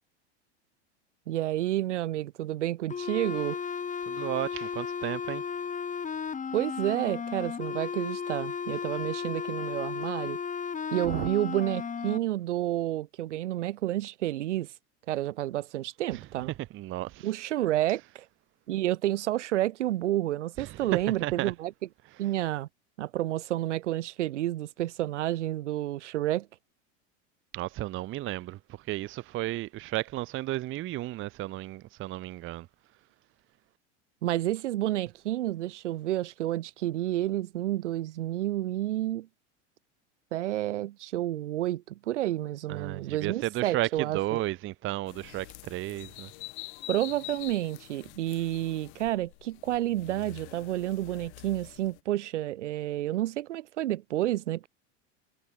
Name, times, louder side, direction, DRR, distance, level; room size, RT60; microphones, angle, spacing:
voice 1, 1.3-3.6 6.5-10.4 10.9-14.7 15.1-16.5 17.2-18.2 18.7-21.7 22.2-22.7 23.0-26.5 34.2-39.3 40.3-44.2 46.9-54.7, right 14 dB, 85° right, 1.7 m, -30 dB
sound 1, 2.9-12.2, left 6 dB, 20° left, 2.4 m, -34 dB
voice 2, 4.1-5.4 11.1-11.3 16.7-17.3 20.6-20.8 21.2-21.5 27.5-28.6 28.9-32.7 42.7-46.3, right 16 dB, 35° right, 0.6 m, -33 dB
sound 2, 45.1-52.0, left 23 dB, 70° left, 7.0 m, -46 dB
hypercardioid pair, 100°, 35 cm